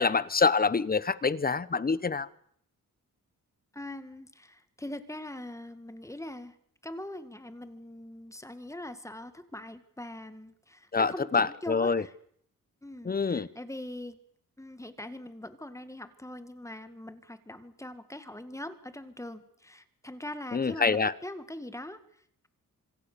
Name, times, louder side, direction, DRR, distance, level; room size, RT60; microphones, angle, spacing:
voice 1, 0.0-2.3 10.9-12.0 13.0-13.5 20.5-21.1, left 4 dB, 25° left, 19 dB, 1.0 m, -26 dB
voice 2, 3.7-6.6 6.8-12.1 12.8-14.2 14.6-22.5, left 1 dB, 10° left, 11 dB, 2.0 m, -42 dB
26.5 x 23.0 x 6.9 m, 0.65 s
cardioid pair, 100°, 34 cm